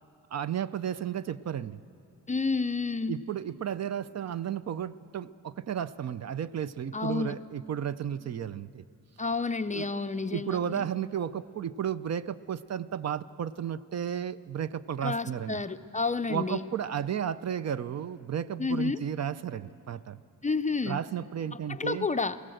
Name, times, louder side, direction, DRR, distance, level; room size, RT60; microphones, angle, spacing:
voice 1, 0.3-1.8 3.1-8.8 9.7-9.9 10.3-15.6 16.3-20.2 20.9-22.1, right 9 dB, 50° right, 15 dB, 0.5 m, -33 dB
voice 2, 2.3-3.2 6.9-7.4 9.2-10.8 15.0-16.7 18.6-19.0 20.4-21.0 21.7-22.4, left 4 dB, 20° left, 9 dB, 0.4 m, -30 dB
23.0 x 17.5 x 7.8 m, 2.6 s
wide cardioid pair, 120°, 34 cm